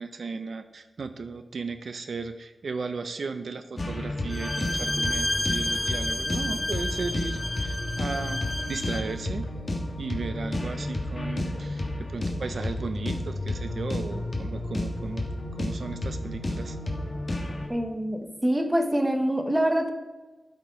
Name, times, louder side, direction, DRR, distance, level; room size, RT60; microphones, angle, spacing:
voice 1, 0.0-9.5 10.0-16.8, right 4 dB, 70° right, 9 dB, 0.5 m, -35 dB
sound 1, 3.8-17.7, left 1 dB, 40° left, 1.5 m, -31 dB
Bowed string instrument, 4.3-9.1, left 1 dB, 20° left, 0.9 m, -31 dB
voice 2, 17.7-19.9, right 1 dB, 15° right, 5 dB, 0.9 m, -25 dB
12.5 x 4.4 x 5.1 m, 1.2 s
wide cardioid pair, 105°, 0 cm